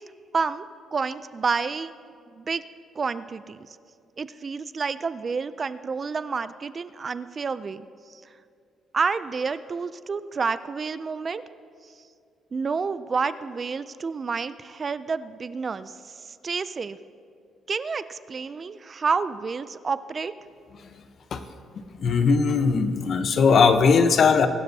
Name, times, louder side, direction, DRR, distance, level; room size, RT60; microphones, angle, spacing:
voice 1, 0.3-0.7 0.9-1.9 2.4-2.6 3.0-3.8 4.2-8.2 8.9-11.4 12.5-17.0 17.7-20.3, right 5 dB, 30° right, 14 dB, 0.3 m, -29 dB
voice 2, 22.0-24.5, left 5 dB, 50° left, 9 dB, 0.8 m, -19 dB
23.5 x 12.0 x 2.7 m, 2.3 s
cardioid pair, 150°, 0 cm